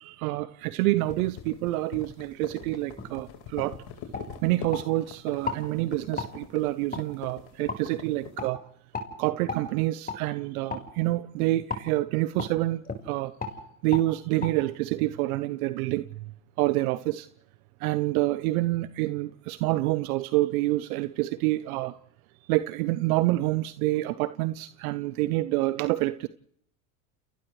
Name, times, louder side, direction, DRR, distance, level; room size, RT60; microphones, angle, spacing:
voice 1, 0.0-3.8 4.4-8.6 9.2-13.3 13.8-16.2 16.6-17.3 17.8-21.9 22.5-26.3, right 18 dB, 70° right, 14 dB, 0.9 m, -27 dB
sound 1, 1.0-8.4, left 9 dB, 60° left, 4.5 m, -43 dB
sound 2, 3.0-3.1 3.6-3.7 4.1-4.9 5.4-5.6 6.2-6.3 6.9-7.0 7.7-7.8 8.4-8.5 8.9-9.1 9.5-9.6 10.1-10.2 10.7-10.9 11.7-11.9 12.4-12.5 12.8-13.0 13.4-13.6 13.9-14.1 14.4-14.5, left 4 dB, 20° left, 4.8 m, -34 dB
30.0 x 29.0 x 3.2 m, 0.67 s
hypercardioid pair, 85°, 44 cm